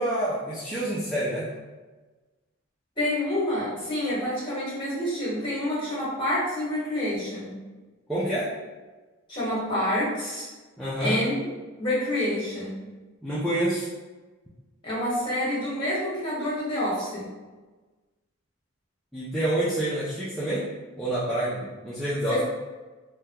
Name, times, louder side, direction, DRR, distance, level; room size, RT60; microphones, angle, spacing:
voice 1, 0.0-1.5 8.1-8.5 10.8-11.2 13.2-13.9 19.1-20.7 21.0-22.4, right 1 dB, ahead, -11 dB, 0.4 m, -27 dB
voice 2, 3.0-7.6 9.3-10.5 11.0-11.3 11.8-12.8 14.8-17.3 22.3-22.4, left 1 dB, 25° left, -9 dB, 1.3 m, -28 dB
3.5 x 2.2 x 2.8 m, 1.3 s
head